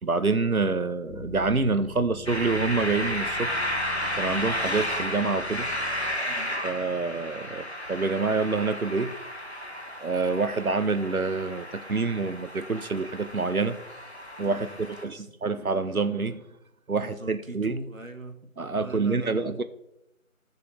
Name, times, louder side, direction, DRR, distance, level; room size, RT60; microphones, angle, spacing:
voice 1, 0.0-3.5 4.2-5.7 6.6-9.1 10.0-13.8 14.4-16.4 16.9-17.8 18.6-19.6, right 4 dB, 85° right, 11 dB, 0.9 m, -27 dB
sound 1, 1.1-6.2, left 5 dB, 75° left, 1.4 m, -44 dB
sound 2, 2.3-15.0, equal, 50° left, 1.2 m, -33 dB
voice 2, 6.2-6.5 14.5-15.3 17.0-18.3 18.8-19.6, right 2 dB, 65° right, 6 dB, 1.4 m, -41 dB
13.0 x 6.8 x 3.1 m, 0.85 s
figure-of-eight pair, 180°, 42 cm